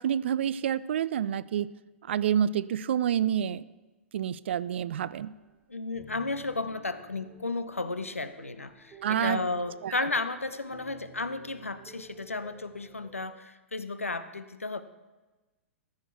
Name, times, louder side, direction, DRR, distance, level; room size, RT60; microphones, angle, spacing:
voice 1, 0.0-1.7 2.1-3.6 4.1-5.3 9.0-9.4 9.8-9.9, right 9 dB, 55° right, 18 dB, 0.4 m, -28 dB
sound 1, 4.5-5.5 5.8-13.3, right 4 dB, 20° right, 1.6 m, -54 dB
voice 2, 5.7-14.8, left 3 dB, 85° left, 12 dB, 0.6 m, -33 dB
14.0 x 6.3 x 4.6 m, 1.2 s
figure-of-eight pair, 110°, 7 cm